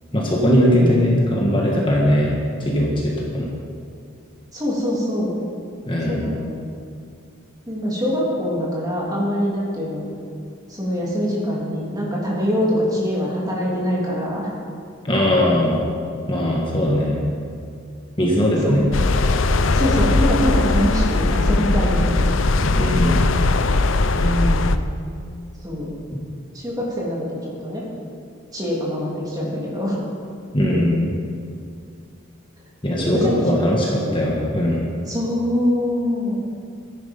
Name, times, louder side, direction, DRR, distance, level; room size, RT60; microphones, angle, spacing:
voice 1, 0.1-3.5 5.9-6.2 15.0-15.8 16.3-17.2 18.2-18.9 22.7-23.3 30.5-31.1 32.8-34.8, equal, 25° left, -3 dB, 1.6 m, -19 dB
voice 2, 0.7-1.1 4.5-5.3 6.1-6.5 7.7-10.0 10.7-14.5 18.6-18.8 19.7-22.3 24.1-24.8 25.6-25.9 26.5-27.9 28.5-30.0 30.7-30.8 33.0-33.7 34.0-34.2 35.1-36.3, equal, 20° right, -5 dB, 3.2 m, -24 dB
sound 1, 18.9-24.8, left 2 dB, 65° left, 0.6 m, -19 dB
14.0 x 10.5 x 5.5 m, 2.3 s
head